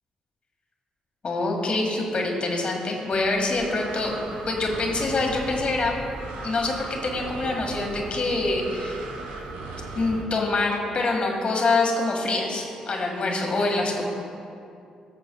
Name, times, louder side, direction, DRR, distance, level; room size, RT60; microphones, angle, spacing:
voice 1, 1.2-4.1 4.5-5.9 6.4-9.0 10.0-14.0, left 2 dB, 50° left, 0 dB, 1.9 m, -25 dB
Breathing, 3.1-10.2, right 3 dB, 85° right, 0.8 m, -37 dB
17.5 x 6.7 x 2.3 m, 2.5 s
hypercardioid pair, 50°, 2 cm